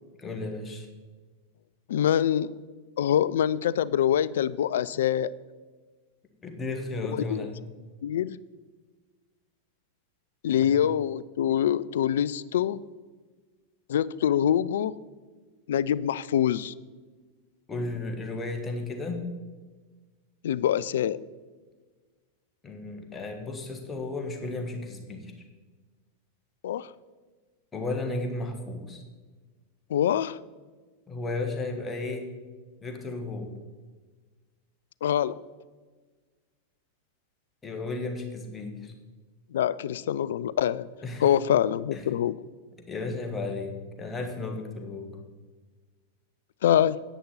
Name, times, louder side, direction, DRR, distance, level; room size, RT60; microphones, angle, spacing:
voice 1, 0.2-0.9 6.4-7.6 10.6-10.8 17.7-19.3 22.6-25.3 27.7-29.0 31.1-32.3 32.8-33.6 37.6-38.9 41.0-41.2 41.9-42.1 42.8-45.2, left 2 dB, 15° left, 3 dB, 1.6 m, -34 dB
voice 2, 1.9-2.6 3.0-5.3 7.1-7.5 8.0-8.4 10.4-12.8 13.9-15.0 15.7-16.7 20.4-21.2 26.6-26.9 29.9-30.4 35.0-35.4 39.5-40.9 41.2-42.4 46.6-47.0, left 10 dB, 60° left, 19 dB, 0.3 m, -25 dB
10.0 x 9.1 x 4.3 m, 1.4 s
figure-of-eight pair, 90°, 0 cm